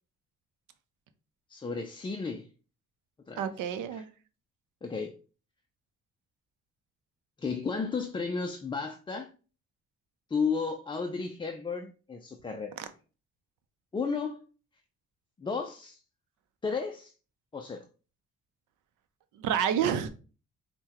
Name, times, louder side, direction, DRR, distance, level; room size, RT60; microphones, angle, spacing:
voice 1, 1.5-2.5 3.3-3.5 3.9-4.0 4.8-5.2 7.4-9.3 10.3-12.8 13.9-14.5 15.4-16.0 16.6-17.1 17.5-17.9, left 5 dB, 15° left, 0.3 m, -33 dB
voice 2, 3.4-4.0 12.8-12.9 19.4-20.1, right 8 dB, 85° right, 0.6 m, -29 dB
5.5 x 2.2 x 2.9 m
cardioid pair, 90°, 30 cm